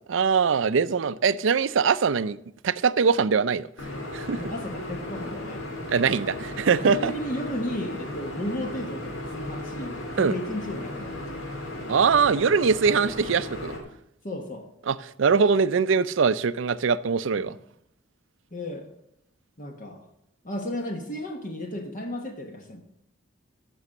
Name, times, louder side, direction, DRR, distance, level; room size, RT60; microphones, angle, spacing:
voice 1, 0.1-2.4 2.6-3.7 4.1-4.4 5.9-7.1 10.2-10.4 11.9-13.8 14.9-17.6, right 5 dB, 75° right, 16 dB, 0.5 m, -22 dB
sound 1, 3.8-13.8, left 1 dB, 90° left, 2.7 m, -36 dB
voice 2, 4.3-5.6 6.7-11.4 14.2-14.7 17.4-17.5 18.5-18.9 19.6-20.0 20.4-22.8, left 1 dB, 45° left, 3 dB, 1.4 m, -34 dB
14.5 x 6.2 x 6.6 m, 0.75 s
head